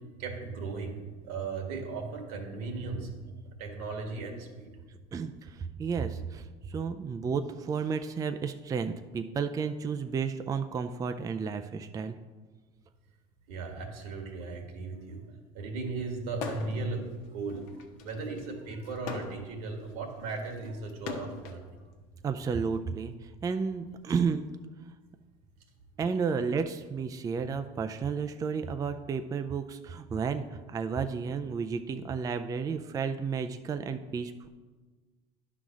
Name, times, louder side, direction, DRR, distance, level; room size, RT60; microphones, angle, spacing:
voice 1, 0.2-3.1 3.6-4.7 13.5-15.3 15.5-17.6 18.0-21.7, right 3 dB, 80° right, 3 dB, 1.8 m, -37 dB
voice 2, 5.1-12.2 22.2-24.4 26.0-34.5, right 5 dB, 20° right, 8 dB, 0.4 m, -32 dB
sound 1, 16.3-16.9 17.2-21.6 22.5-24.1, left 6 dB, 75° left, 1.1 m, -42 dB
10.0 x 3.9 x 6.1 m, 1.4 s
supercardioid pair, 110°, 18 cm